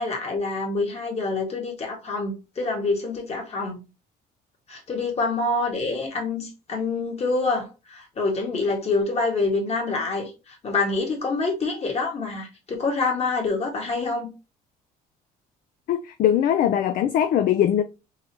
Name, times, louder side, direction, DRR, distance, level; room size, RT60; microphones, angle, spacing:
voice 1, 0.0-3.8 4.7-14.3, left 3 dB, 40° left, 1.6 m, -26 dB
voice 2, 15.9-17.8, left 10 dB, 55° left, 0.4 m, -21 dB
3.8 x 2.8 x 2.8 m
cardioid pair, 110°, 17 cm